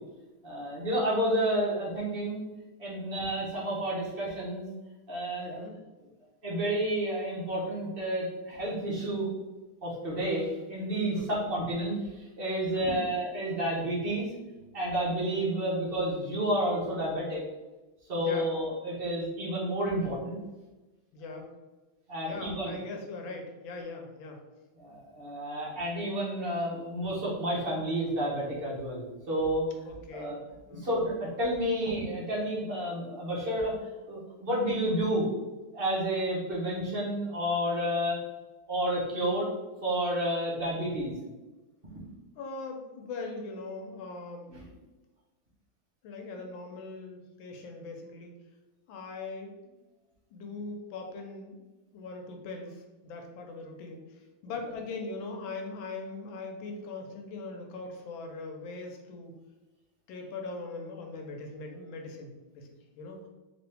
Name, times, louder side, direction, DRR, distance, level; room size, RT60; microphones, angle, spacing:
voice 1, 0.4-2.4 2.8-4.7 5.1-5.6 6.4-9.3 9.8-14.3 14.7-17.4 18.1-20.4 22.1-22.8 24.7-29.7 30.1-30.4 30.7-33.7 34.1-35.3 35.7-38.2 38.7-39.5 39.8-41.1 44.5-44.6, right 1 dB, 45° right, -6 dB, 0.7 m, -30 dB
voice 2, 5.4-5.8 11.1-11.5 12.7-13.0 18.1-18.5 21.1-21.5 22.2-24.4 29.9-30.4 30.7-31.0 42.4-44.5 46.0-48.3 48.9-49.7 50.3-51.6 51.9-54.0 54.4-59.4 60.1-62.7 62.9-63.3, left 3 dB, 75° left, 3 dB, 1.3 m, -41 dB
3.4 x 3.0 x 3.3 m, 1.1 s
omnidirectional pair, 2.3 m